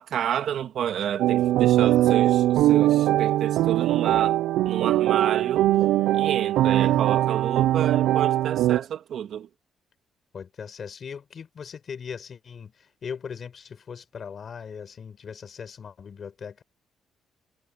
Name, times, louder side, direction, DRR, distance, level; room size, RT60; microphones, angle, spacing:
voice 1, 0.0-4.4 4.6-5.6 6.1-9.5, right 9 dB, 70° right, 2.3 m, -30 dB
sound 1, 1.2-8.8, right 14 dB, 90° right, 0.3 m, -21 dB
voice 2, 1.8-2.1 6.6-7.0 10.3-16.6, left 6 dB, 50° left, 4.4 m, -39 dB
cardioid pair, 90°, 0 cm